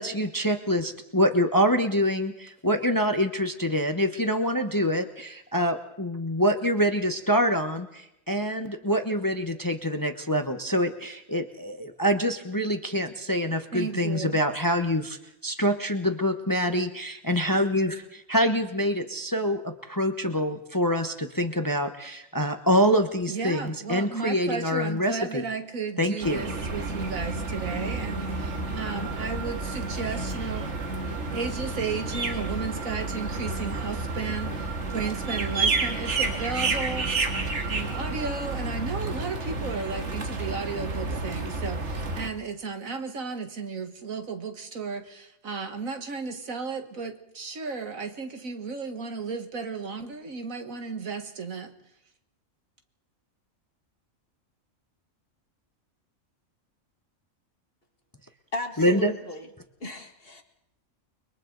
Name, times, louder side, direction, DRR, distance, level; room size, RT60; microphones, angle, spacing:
voice 1, 0.0-25.4 26.0-26.4 58.8-59.1, equal, 15° left, 7 dB, 1.0 m, -25 dB
voice 2, 13.7-14.4 23.3-30.7 31.1-37.1 37.7-51.7, right 4 dB, 80° right, 6 dB, 2.1 m, -34 dB
sound 1, 26.2-42.3, right 3 dB, 60° right, 2.0 m, -30 dB
voice 3, 58.5-59.5 59.8-60.4, left 2 dB, 45° left, 4 dB, 2.2 m, -35 dB
29.5 x 22.5 x 4.0 m, 0.80 s
omnidirectional pair, 1.4 m